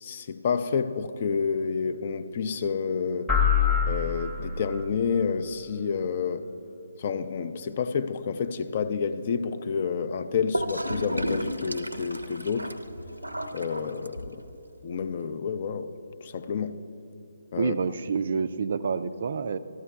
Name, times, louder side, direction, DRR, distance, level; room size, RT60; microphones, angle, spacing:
voice 1, 0.0-3.3 3.9-6.5 7.0-12.7 13.5-14.4 14.8-15.9 16.2-16.8 17.5-17.7, left 6 dB, 35° left, 0.4 m, -29 dB
sound 1, 3.3-4.9, left 7 dB, 10° left, 0.9 m, -24 dB
Gurgling / Toilet flush, 10.5-14.5, equal, 85° right, 0.6 m, -33 dB
voice 2, 17.6-19.6, right 5 dB, 45° right, 0.3 m, -28 dB
14.0 x 12.5 x 2.3 m
figure-of-eight pair, 140°, 0 cm